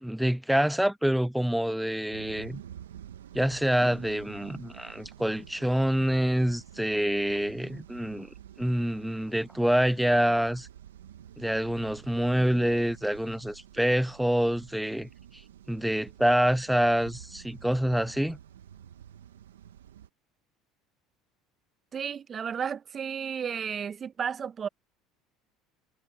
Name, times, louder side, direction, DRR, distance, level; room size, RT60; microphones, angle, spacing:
voice 1, 0.0-2.6 3.3-8.3 8.6-10.7 11.4-15.1 15.7-18.4, equal, 5° right, 0.4 m, -26 dB
sound 1, 2.1-20.1, right 10 dB, 90° right, 1.2 m, -49 dB
voice 2, 21.9-24.7, right 7 dB, 40° right, 1.0 m, -33 dB
hypercardioid pair, 75°, 0 cm